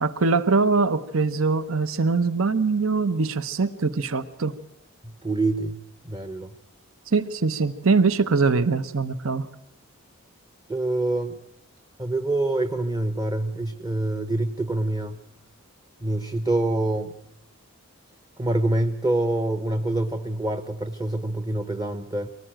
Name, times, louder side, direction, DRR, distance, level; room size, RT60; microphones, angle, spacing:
voice 1, 0.0-4.5 7.1-9.5, right 4 dB, 65° right, 14 dB, 0.9 m, -22 dB
voice 2, 5.0-6.5 10.7-11.4 12.0-15.2 16.0-17.1 18.4-22.3, right 2 dB, 20° right, 10 dB, 0.8 m, -26 dB
24.5 x 19.0 x 9.0 m, 0.78 s
head